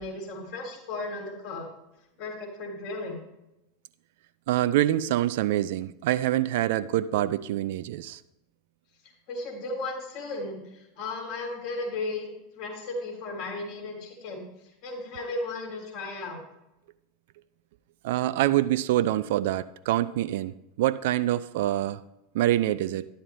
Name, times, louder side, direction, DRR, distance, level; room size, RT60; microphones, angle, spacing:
voice 1, 0.0-1.7 2.2-3.2 9.3-12.3 12.5-14.5 14.8-16.4, left 2 dB, 50° left, -1 dB, 3.4 m, -35 dB
voice 2, 4.5-8.2 18.0-22.0 22.3-23.1, right 13 dB, 60° right, 14 dB, 0.4 m, -25 dB
12.5 x 11.0 x 2.2 m, 0.89 s
figure-of-eight pair, 85°, 0 cm